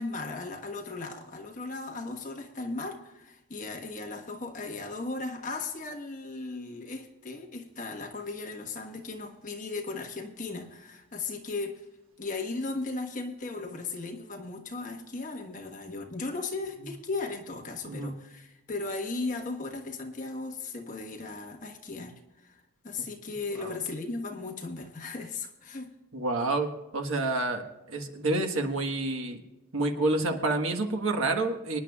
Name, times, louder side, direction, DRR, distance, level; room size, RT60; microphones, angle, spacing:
voice 1, 0.0-11.8 12.2-22.6 22.8-25.9, left 3 dB, 35° left, 2 dB, 1.3 m, -36 dB
voice 2, 26.1-29.4 29.7-31.8, right 2 dB, 75° right, 4 dB, 1.4 m, -29 dB
24.5 x 10.0 x 2.4 m, 1.0 s
head